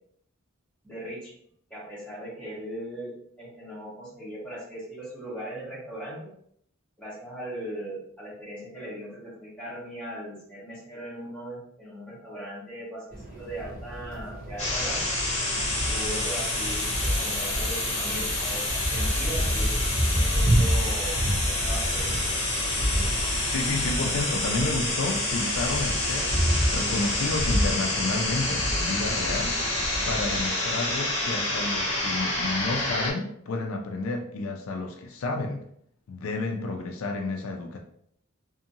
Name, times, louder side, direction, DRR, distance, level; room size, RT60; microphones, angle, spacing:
voice 1, 0.8-1.3 1.7-6.3 7.0-15.1 15.9-22.1, right 1 dB, 5° left, -8 dB, 1.1 m, -39 dB
sound 1, 13.1-30.4, equal, 40° right, 0.7 m, -29 dB
sound 2, 14.6-33.1, left 2 dB, 35° left, 1.0 m, -28 dB
voice 2, 23.5-35.6 36.1-37.8, left 3 dB, 75° left, 3 dB, 0.4 m, -31 dB
2.7 x 2.6 x 2.6 m, 0.67 s
head